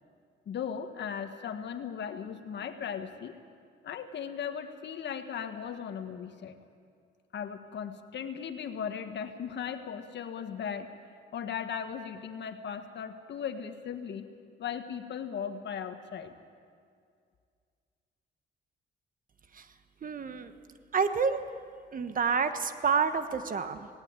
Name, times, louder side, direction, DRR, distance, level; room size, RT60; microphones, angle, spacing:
voice 1, 0.4-3.3 3.8-6.6 7.3-10.9 11.3-14.3 14.6-16.3, left 7 dB, 60° left, 8 dB, 1.6 m, -37 dB
voice 2, 20.0-20.5 20.9-21.4 21.9-23.9, right 5 dB, 45° right, 9 dB, 1.3 m, -28 dB
18.5 x 17.5 x 9.0 m, 2.2 s
cardioid pair, 90°, 20 cm